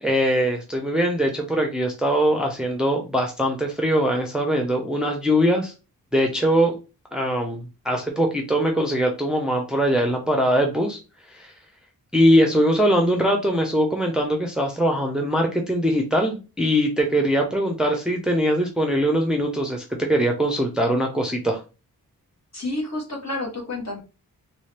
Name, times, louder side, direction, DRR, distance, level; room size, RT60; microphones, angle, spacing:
voice 1, 0.0-5.7 6.1-6.7 7.1-11.0 11.3-11.5 12.1-21.6, equal, ahead, 2 dB, 0.6 m, -22 dB
voice 2, 22.5-24.0, left 2 dB, 45° left, 0 dB, 1.4 m, -29 dB
3.1 x 2.7 x 3.3 m, 0.30 s
wide cardioid pair, 85°, 36 cm